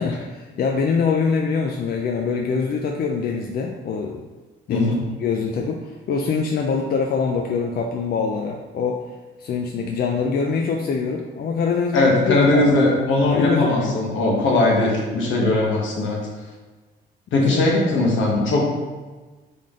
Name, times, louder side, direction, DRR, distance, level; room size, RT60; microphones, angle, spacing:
voice 1, 0.0-4.2 4.7-4.9 5.2-9.0 9.4-12.7 13.4-13.9 15.4-15.6 17.3-17.6 17.9-18.0, left 5 dB, 50° left, 1 dB, 0.4 m, -24 dB
voice 2, 11.9-16.2 17.3-18.6, left 2 dB, 75° left, -2 dB, 1.2 m, -19 dB
3.8 x 3.7 x 3.6 m, 1.3 s
cardioid pair, 90°, 20 cm